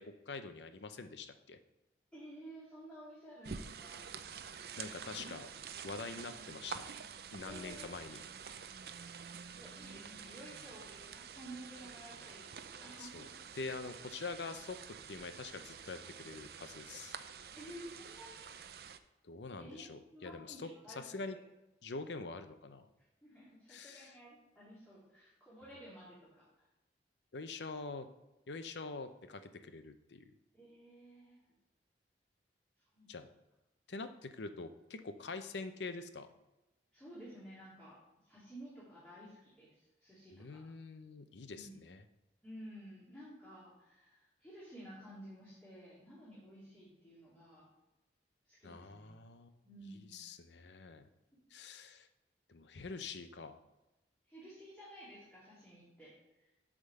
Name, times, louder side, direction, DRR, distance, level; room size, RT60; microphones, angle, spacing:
voice 1, 0.0-1.6 4.8-5.5 5.8-6.8 7.3-8.2 13.0-13.3 13.5-17.2 19.2-21.4 21.8-22.9 23.7-24.1 27.3-28.1 28.5-30.2 33.1-33.3 33.9-36.3 40.3-42.0 48.6-49.5 50.1-51.1 51.5-52.1 52.5-53.6, left 3 dB, 80° left, 9 dB, 0.7 m, -45 dB
voice 2, 2.1-4.1 4.8-5.2 7.4-7.9 9.5-13.3 17.5-18.6 19.6-21.0 23.2-26.7 30.5-31.4 32.9-33.2 36.9-40.6 41.5-41.8 42.4-47.7 48.4-49.1 49.6-50.2 54.3-56.5, right 1 dB, 5° left, -11 dB, 2.5 m, -53 dB
sound 1, 3.4-19.0, right 6 dB, 60° right, 0.4 m, -48 dB
8.2 x 3.7 x 6.6 m, 1.0 s
head